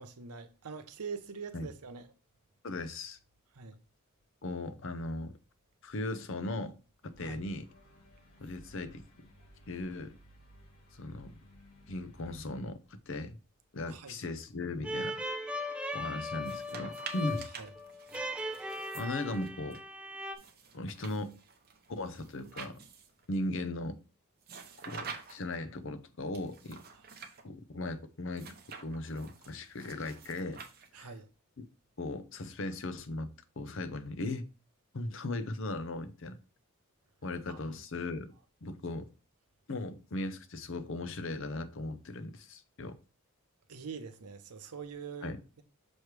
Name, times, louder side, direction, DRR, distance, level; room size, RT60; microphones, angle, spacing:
voice 1, 0.0-2.1 3.5-3.8 7.2-7.4 13.9-14.2 17.6-17.7 30.9-31.3 37.5-37.7 43.7-45.6, right 5 dB, 90° right, 0.8 m, -44 dB
voice 2, 2.6-3.2 4.4-5.4 5.8-6.8 7.0-7.7 8.4-9.3 9.7-10.2 10.9-11.3 11.9-12.8 13.1-13.4 13.7-15.1 15.9-17.5 18.9-19.8 20.7-21.4 21.9-22.8 23.3-24.0 24.9-26.8 27.4-28.5 28.8-30.6 30.9-31.1 31.6-31.7 32.0-34.4 34.9-36.4 37.2-38.3 38.6-39.1 39.7-42.9 45.2-45.4, left 2 dB, 55° left, 0.6 m, -38 dB
sound 1, 7.0-12.7, equal, 80° left, 2.9 m, -58 dB
sound 2, 14.8-20.4, left 1 dB, 5° right, 0.5 m, -38 dB
sound 3, 16.3-19.8 20.4-23.2 24.4-25.6 26.3-27.4 28.3-31.2, right 5 dB, 45° right, 0.8 m, -48 dB
6.2 x 3.2 x 4.7 m
head